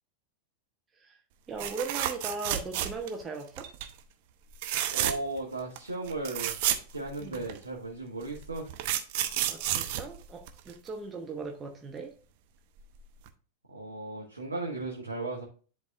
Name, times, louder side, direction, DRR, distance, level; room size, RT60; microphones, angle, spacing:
voice 1, 1.5-3.7 7.2-7.4 9.5-12.2, right 4 dB, 20° right, 0.9 m, -38 dB
sound 1, 1.6-3.2 3.6-3.9 4.5-5.4 5.8-5.9 6.1-7.6 8.3-10.9 12.8-13.0 13.3-13.4, right 12 dB, 50° right, 0.7 m, -31 dB
voice 2, 4.9-6.6 6.9-8.7 13.7-15.4, right 2 dB, 80° right, 1.2 m, -36 dB
10.5 x 4.0 x 2.4 m
figure-of-eight pair, 90°, 0 cm